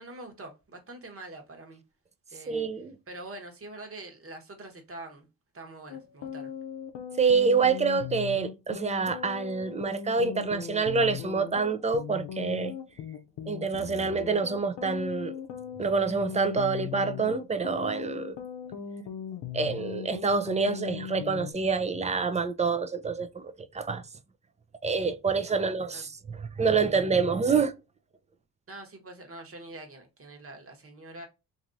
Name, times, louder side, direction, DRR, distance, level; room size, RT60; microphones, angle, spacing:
voice 1, 0.0-1.8 2.3-2.6 3.1-5.3 5.5-6.5 25.5-26.0 28.7-31.3, right 2 dB, 35° right, 1.1 m, -45 dB
voice 2, 2.5-3.0 7.2-12.7 13.5-15.3 15.8-18.4 19.5-24.0 24.8-27.7, right 5 dB, 20° right, 0.3 m, -27 dB
sound 1, 5.9-21.5, left 8 dB, 85° left, 0.6 m, -39 dB
2.9 x 2.6 x 2.5 m
cardioid pair, 70°, 40 cm